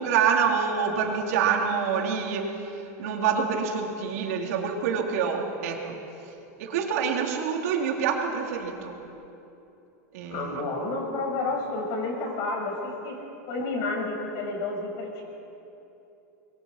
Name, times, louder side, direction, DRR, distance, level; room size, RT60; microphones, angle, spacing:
voice 1, 0.0-6.0 6.6-9.0 10.1-10.6, right 6 dB, 70° right, 0 dB, 4.0 m, -26 dB
voice 2, 10.3-13.2 13.5-15.2, left 3 dB, 50° left, 1 dB, 7.6 m, -30 dB
27.5 x 22.5 x 6.1 m, 2.9 s
supercardioid pair, 135°, 8 cm